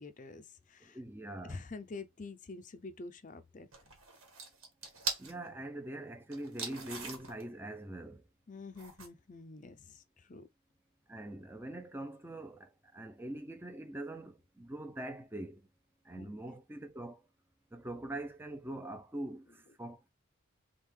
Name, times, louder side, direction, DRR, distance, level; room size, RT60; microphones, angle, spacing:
voice 1, 0.0-1.0 1.4-3.7 8.5-10.5 16.1-16.3, left 3 dB, 35° left, 0.5 m, -47 dB
voice 2, 0.8-1.6 5.2-8.3 11.1-15.7 16.0-17.2 17.7-20.1, right 1 dB, 10° right, 0.5 m, -43 dB
sound 1, 3.7-5.3 6.3-7.5 8.8-9.1, right 5 dB, 80° right, 1.7 m, -41 dB
3.6 x 3.6 x 3.2 m
head